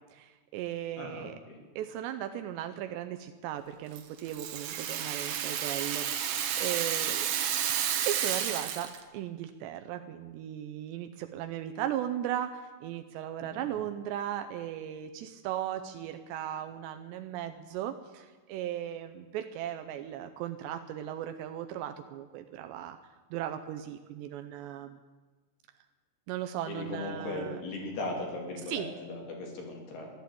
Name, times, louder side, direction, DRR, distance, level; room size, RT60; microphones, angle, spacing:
voice 1, 0.1-1.3 1.8-7.3 8.0-23.0 23.3-25.0 26.3-27.6 28.7-28.9, right 11 dB, 90° right, 7 dB, 2.4 m, -37 dB
voice 2, 1.0-1.6 13.4-13.7 26.7-30.1, left 2 dB, 55° left, 0 dB, 4.2 m, -38 dB
Rattle (instrument), 4.0-9.0, right 9 dB, 70° right, 2.9 m, -31 dB
14.5 x 11.5 x 8.5 m, 1.3 s
omnidirectional pair, 5.8 m